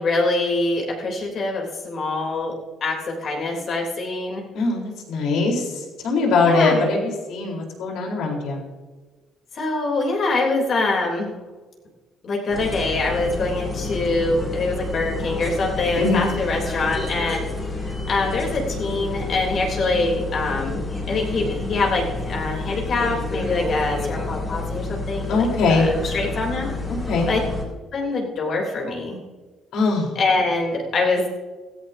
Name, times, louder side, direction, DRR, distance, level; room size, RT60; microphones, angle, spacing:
voice 1, 0.0-2.5 2.8-4.4 6.4-6.9 9.5-11.3 12.2-17.4 18.1-26.7 27.3-27.4 27.9-29.2 30.1-31.3, left 3 dB, 45° left, -1 dB, 3.4 m, -24 dB
voice 2, 4.5-8.6 16.0-16.3 25.3-25.9 26.9-27.3 29.7-30.1, left 3 dB, 75° left, 0 dB, 4.1 m, -21 dB
sound 1, 12.5-27.6, left 2 dB, 15° left, 3.1 m, -29 dB
16.5 x 15.5 x 2.8 m, 1.3 s
cardioid pair, 150°, 0 cm